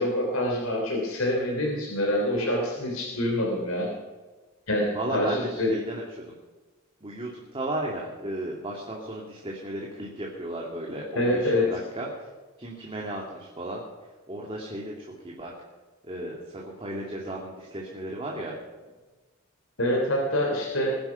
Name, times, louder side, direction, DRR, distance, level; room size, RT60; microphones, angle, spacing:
voice 1, 0.0-3.9 4.7-5.7 11.1-11.8 19.8-21.0, left 1 dB, 80° left, -1 dB, 3.3 m, -26 dB
voice 2, 4.9-6.3 7.0-12.3 12.6-13.8 14.3-15.5 16.0-18.5, right 1 dB, 25° right, -2 dB, 2.4 m, -35 dB
20.5 x 10.5 x 5.8 m, 1.3 s
head